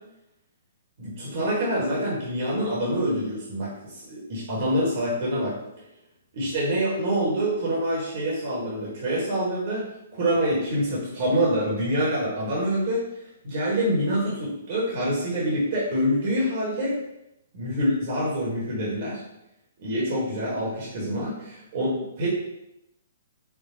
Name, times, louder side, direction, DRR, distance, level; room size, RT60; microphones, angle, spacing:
voice 1, 1.0-5.5 6.3-9.9 10.1-13.0 13.4-17.0 17.5-19.2 19.8-22.3, equal, 45° right, -5 dB, 1.3 m, -26 dB
4.8 x 2.5 x 3.8 m, 0.85 s
figure-of-eight pair, 120°, 0 cm